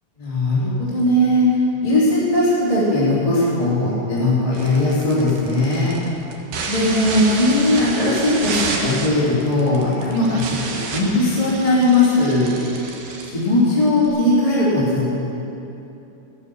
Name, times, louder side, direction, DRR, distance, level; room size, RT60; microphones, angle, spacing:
voice 1, 0.2-1.5 1.8-6.0 6.7-12.5 13.2-15.1, left 1 dB, 10° left, -9 dB, 2.4 m, -18 dB
sound 1, 4.5-14.1, right 3 dB, 65° right, 2.8 m, -30 dB
14.0 x 11.5 x 7.0 m, 3.0 s
omnidirectional pair, 4.2 m